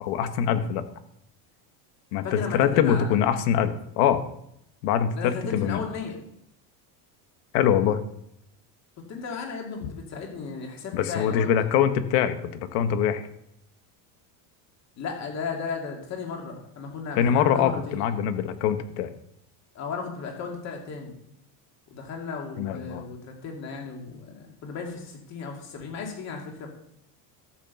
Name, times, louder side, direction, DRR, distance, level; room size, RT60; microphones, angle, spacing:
voice 1, 0.0-0.8 2.1-4.2 4.8-5.8 7.5-8.0 10.9-13.2 17.2-19.1 22.6-23.0, left 9 dB, 85° left, 10 dB, 1.4 m, -23 dB
voice 2, 2.2-3.3 5.1-6.2 9.1-11.5 15.0-18.0 19.7-21.2 21.9-26.7, left 5 dB, 35° left, 1 dB, 2.6 m, -35 dB
13.5 x 6.0 x 7.0 m, 0.75 s
cardioid pair, 160°, 46 cm